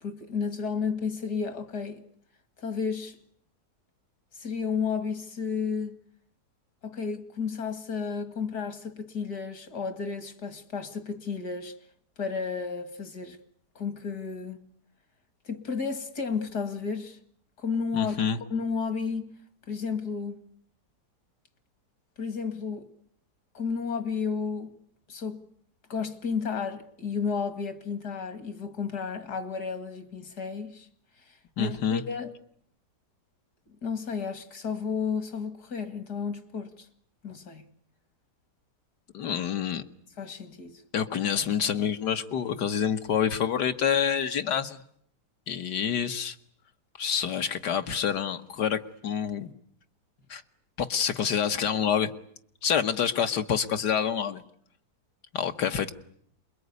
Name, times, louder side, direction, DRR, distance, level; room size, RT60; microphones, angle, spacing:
voice 1, 0.0-2.0 2.6-3.2 4.3-6.0 6.8-11.7 12.2-13.4 13.8-14.6 15.4-17.2 17.6-18.2 18.5-19.3 19.7-20.4 22.2-22.9 23.5-24.7 25.1-25.4 25.9-30.9 31.6-32.3 33.8-36.9 37.2-37.6 40.2-40.8, left 5 dB, 70° left, 2.6 m, -32 dB
voice 2, 17.9-18.4 31.6-32.0 39.1-39.8 40.9-44.8 45.5-46.4 47.0-49.5 50.3-50.4 50.8-52.1 52.6-54.4 55.3-55.9, left 8 dB, 85° left, 2.0 m, -27 dB
28.0 x 22.0 x 9.6 m
omnidirectional pair, 1.7 m